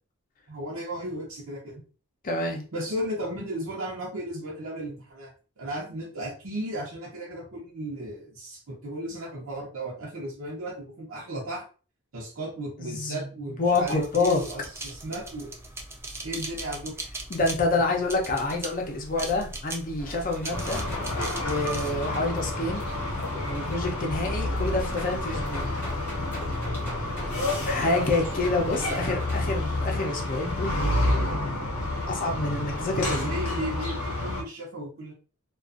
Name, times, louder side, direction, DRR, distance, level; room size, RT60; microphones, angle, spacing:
voice 1, 0.5-1.8 2.7-11.6 12.1-15.5 16.2-17.0 28.0-28.1 28.8-29.2 33.0-35.1, right 1 dB, 70° right, -3 dB, 0.7 m, -35 dB
voice 2, 2.2-2.6 12.8-13.3 13.6-14.4 17.3-20.8 21.4-22.9 23.3-25.7 27.7-31.5 32.1-33.4, left 3 dB, 40° left, 1 dB, 0.6 m, -27 dB
sound 1, 13.7-21.9, right 2 dB, 10° right, 0.3 m, -39 dB
sound 2, 20.0-29.4, equal, 10° left, 0.8 m, -41 dB
sound 3, 20.5-34.4, left 1 dB, 90° left, 0.7 m, -29 dB
2.4 x 2.3 x 2.4 m, 0.36 s
head